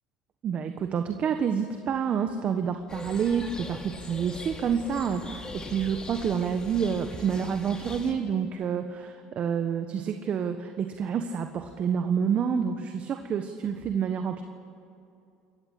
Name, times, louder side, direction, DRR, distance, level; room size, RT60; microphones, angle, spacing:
voice 1, 0.4-14.4, right 7 dB, 45° right, 6 dB, 1.3 m, -28 dB
sound 1, 2.9-8.1, left 3 dB, 25° left, 2.7 m, -41 dB
28.5 x 14.0 x 8.3 m, 2.6 s
supercardioid pair, 100°, 3 cm